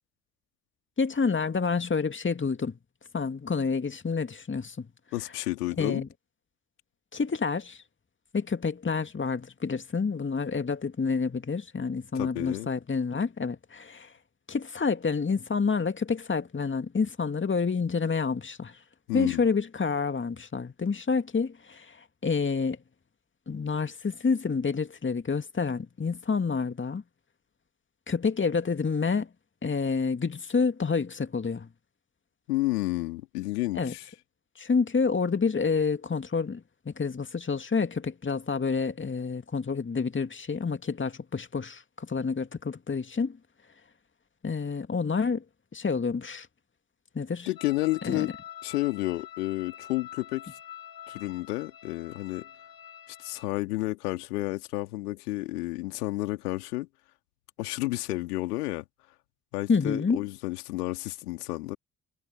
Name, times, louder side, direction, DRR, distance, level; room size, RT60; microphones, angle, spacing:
voice 1, 1.0-2.8 3.1-4.8 5.8-6.1 7.1-7.8 8.3-14.1 14.5-18.8 19.1-22.0 22.2-22.8 23.5-27.0 28.1-29.3 29.6-31.7 33.7-33.9 34.6-43.4 44.4-45.4 45.7-46.5 47.1-47.5 48.0-48.3 59.7-60.2, left 5 dB, 25° left, 2.3 m, -28 dB
voice 2, 5.1-6.0 12.1-12.7 19.1-19.4 32.5-34.1 47.5-48.3 48.6-50.5 51.1-52.5 53.2-56.9 57.6-58.9 59.5-61.8, left 19 dB, 75° left, 2.7 m, -31 dB
sound 1, 47.6-53.5, left 11 dB, 50° left, 2.4 m, -46 dB
figure-of-eight pair, 45°, 46 cm